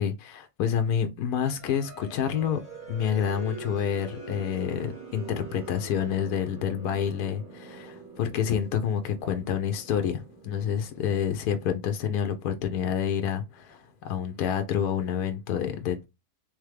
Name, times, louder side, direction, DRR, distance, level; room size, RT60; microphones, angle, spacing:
voice 1, 0.0-2.6 2.9-16.0, left 8 dB, 80° left, 1.2 m, -28 dB
sound 1, 1.4-13.9, right 3 dB, 45° right, 2.3 m, -45 dB
3.6 x 3.4 x 3.2 m
omnidirectional pair, 1.6 m